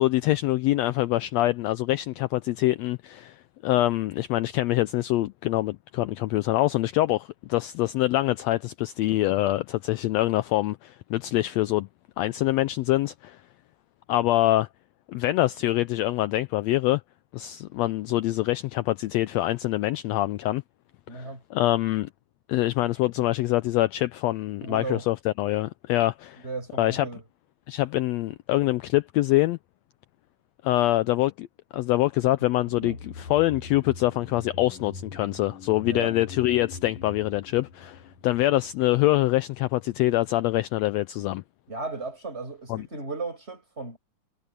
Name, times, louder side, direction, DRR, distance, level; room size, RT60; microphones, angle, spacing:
voice 1, 0.0-11.9 12.2-13.4 14.1-14.7 15.1-17.0 17.3-20.6 21.1-22.1 22.5-26.4 26.8-27.1 27.7-29.6 30.6-31.5 31.7-41.4 42.7-42.8, left 16 dB, 90° left, 1.5 m, -25 dB
voice 2, 21.1-21.4 23.2-23.3 24.6-25.1 26.4-27.2 32.4-32.5 32.8-33.0 35.8-36.1 41.7-44.0, right 3 dB, 20° right, 6.3 m, -35 dB
sound 1, 32.6-39.0 39.3-39.4, left 4 dB, 65° left, 4.7 m, -43 dB
omnidirectional pair, 3.5 m